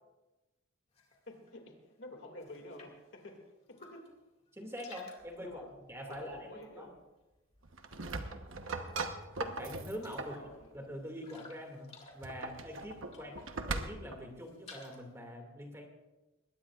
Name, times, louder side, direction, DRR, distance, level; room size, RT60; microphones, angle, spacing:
sound 1, 0.9-1.6 1.9-3.1 3.6-4.2 4.5-7.9 8.2-8.9 9.2-9.3 9.7-13.7 14.1-15.2, left 3 dB, 30° left, 2.2 m, -57 dB
voice 1, 1.3-4.1 5.4-5.7 6.1-7.0 10.3-10.7 13.1-13.5, left 1 dB, 65° left, 4 dB, 2.3 m, -50 dB
voice 2, 4.5-5.6 5.9-6.9 9.4-10.4 10.7-15.9, equal, 15° right, 2 dB, 2.2 m, -44 dB
sound 2, 7.6-10.4 12.1-14.2, right 3 dB, 80° right, 1.1 m, -40 dB
21.0 x 18.5 x 2.4 m, 1.1 s
head